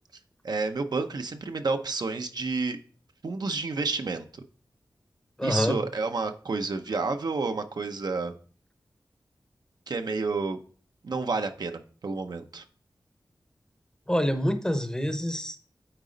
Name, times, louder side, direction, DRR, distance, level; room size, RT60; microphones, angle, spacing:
voice 1, 0.4-2.8 3.2-4.3 5.4-8.4 9.9-10.6 11.0-12.6, right 3 dB, 60° right, 6 dB, 0.7 m, -30 dB
voice 2, 5.4-5.8 14.1-15.6, equal, 10° left, 8 dB, 0.8 m, -26 dB
8.9 x 4.1 x 3.9 m, 0.42 s
wide cardioid pair, 100°, 8 cm